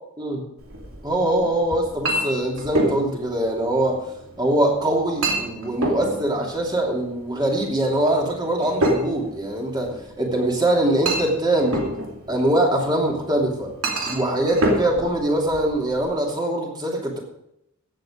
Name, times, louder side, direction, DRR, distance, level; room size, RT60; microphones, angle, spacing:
Chink clink, 0.6-16.1, right 1 dB, 75° right, 2.8 m, -29 dB
voice 1, 1.0-4.0 4.4-11.8 12.3-13.7 14.1-17.2, right 1 dB, 20° right, -1 dB, 2.9 m, -23 dB
15.5 x 8.1 x 5.1 m, 0.82 s
head